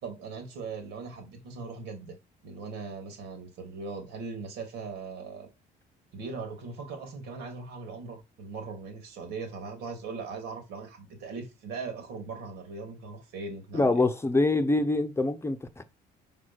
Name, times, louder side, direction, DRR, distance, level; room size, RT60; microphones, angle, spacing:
voice 1, 0.0-2.1 2.4-5.5 6.1-14.0, right 4 dB, 85° right, 2.7 m, -39 dB
voice 2, 13.7-15.8, left 2 dB, 15° left, 0.8 m, -25 dB
5.2 x 4.7 x 6.2 m
cardioid pair, 110°, 17 cm